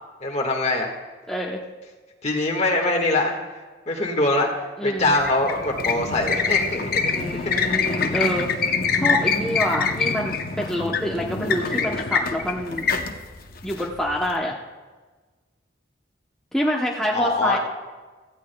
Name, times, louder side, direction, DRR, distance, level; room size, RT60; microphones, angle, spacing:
voice 1, 0.2-0.9 2.2-3.4 3.9-7.1 7.4-7.7 17.1-17.6, left 2 dB, 35° left, 2 dB, 1.6 m, -23 dB
voice 2, 1.3-1.6 4.8-5.1 7.1-12.9 13.6-14.5 16.5-17.6, equal, 5° left, -3 dB, 0.8 m, -27 dB
Squeaky mop bucket, 5.0-14.3, left 5 dB, 50° left, 0.8 m, -25 dB
17.0 x 15.0 x 2.2 m, 1.3 s
head